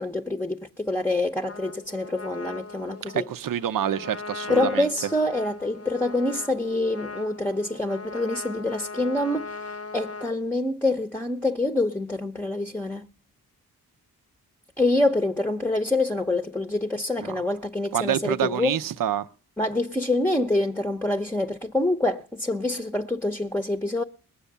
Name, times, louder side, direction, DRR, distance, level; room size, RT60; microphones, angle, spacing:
voice 1, 0.0-3.2 4.5-13.1 14.8-18.8 19.6-24.0, left 2 dB, 5° left, 0.8 m, -26 dB
Trumpet, 1.4-10.3, left 3 dB, 40° left, 0.8 m, -39 dB
voice 2, 3.0-4.9 17.2-17.4 17.9-19.3, right 10 dB, 60° right, 0.7 m, -27 dB
20.5 x 7.2 x 6.7 m
cardioid pair, 60°, 37 cm